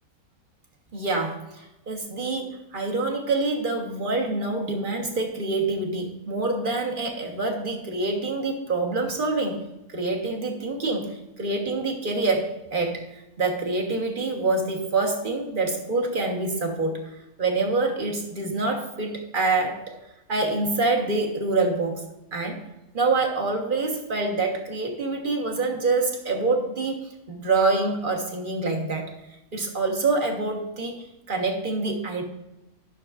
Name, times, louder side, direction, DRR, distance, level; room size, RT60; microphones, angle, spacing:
voice 1, 0.9-9.6 9.9-20.0 20.3-22.1 22.3-22.6 22.9-29.1 29.5-32.2, right 3 dB, 35° right, 1 dB, 1.2 m, -26 dB
12.5 x 6.3 x 2.4 m, 0.95 s
omnidirectional pair, 1.7 m